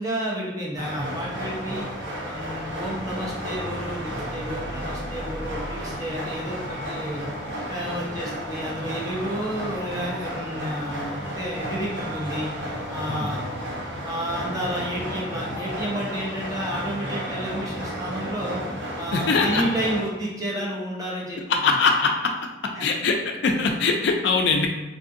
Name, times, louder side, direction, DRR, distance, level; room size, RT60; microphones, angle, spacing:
voice 1, 0.0-1.9 2.2-7.3 7.7-12.5 12.9-13.4 14.0-18.6 19.0-21.6 22.7-22.9, right 1 dB, 20° right, -5 dB, 0.7 m, -31 dB
sound 1, 0.8-20.0, equal, 60° right, 0.7 m, -33 dB
voice 2, 13.1-13.4 19.1-19.6 21.5-22.3 22.6-24.7, left 4 dB, 60° left, 3 dB, 0.3 m, -22 dB
3.6 x 2.5 x 2.5 m, 1.1 s
head